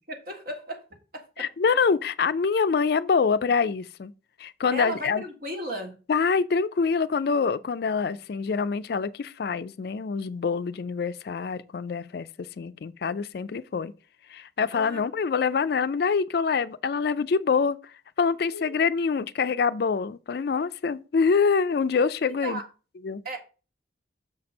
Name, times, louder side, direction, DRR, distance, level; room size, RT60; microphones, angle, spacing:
voice 1, 0.1-0.8 1.1-1.5 4.7-5.9 14.7-15.0 18.5-18.8 22.4-22.6 23.2-23.4, right 1 dB, 55° right, 1.7 m, -35 dB
voice 2, 1.4-4.1 4.4-5.2 6.1-12.3 12.6-13.9 14.3-17.8 18.2-22.6 23.0-23.2, left 5 dB, 55° left, 0.4 m, -25 dB
6.5 x 4.3 x 5.2 m
head